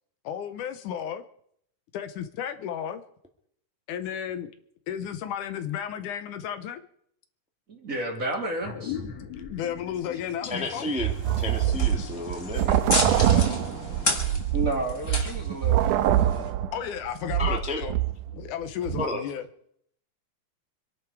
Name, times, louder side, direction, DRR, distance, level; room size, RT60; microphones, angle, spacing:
voice 1, 0.2-1.2 1.9-3.0 3.9-4.5 4.9-6.8 9.5-10.9 13.1-13.7 16.7-18.0 18.3-19.4, left 9 dB, 80° left, 10 dB, 2.4 m, -33 dB
voice 2, 7.7-9.0 11.3-11.4 14.5-15.9, right 2 dB, 25° right, 1 dB, 2.6 m, -31 dB
sound 1, 8.6-13.5, left 8 dB, 60° left, 3.8 m, -41 dB
sound 2, 10.4-16.5, left 2 dB, 25° left, 2.3 m, -33 dB
voice 3, 10.4-12.8 17.4-17.8 19.0-19.2, left 2 dB, 5° right, 2 dB, 1.4 m, -32 dB
sound 3, 11.0-18.5 18.8-19.1, right 11 dB, 80° right, 2.3 m, -24 dB
26.0 x 11.0 x 4.8 m, 0.68 s
omnidirectional pair, 3.7 m